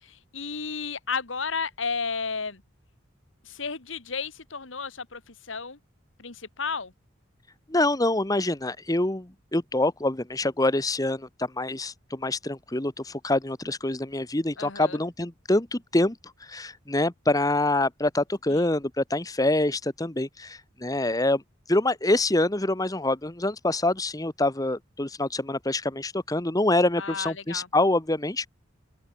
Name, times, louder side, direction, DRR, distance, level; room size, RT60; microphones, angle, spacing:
voice 1, 0.0-2.6 3.4-5.8 6.2-6.9 14.6-15.0 18.5-18.6 27.0-27.7, left 5 dB, 80° left, 2.1 m, -33 dB
voice 2, 7.7-16.2 16.4-21.4 21.7-28.4, left 2 dB, 20° left, 1.3 m, -25 dB
open air
head